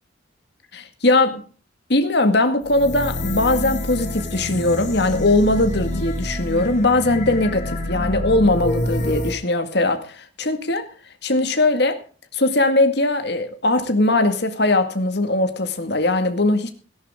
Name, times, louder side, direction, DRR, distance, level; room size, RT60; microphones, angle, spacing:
voice 1, 0.7-1.4 1.9-10.9 11.2-12.0 12.3-16.7, left 2 dB, 60° left, 2.0 m, -20 dB
sound 1, 2.6-9.3, left 1 dB, 40° left, 2.6 m, -27 dB
17.5 x 11.0 x 3.8 m
head